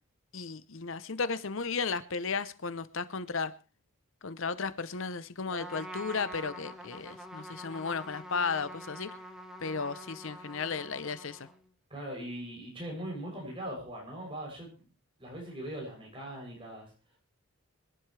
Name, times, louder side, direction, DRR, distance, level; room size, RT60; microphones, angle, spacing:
voice 1, 0.3-3.5 4.2-9.1 9.6-11.5, left 5 dB, 60° left, 0.7 m, -34 dB
Trumpet, 5.5-11.7, equal, ahead, 1.5 m, -46 dB
voice 2, 11.9-14.9 15.2-16.9, right 1 dB, 25° right, 7.5 m, -40 dB
26.0 x 11.5 x 3.3 m
head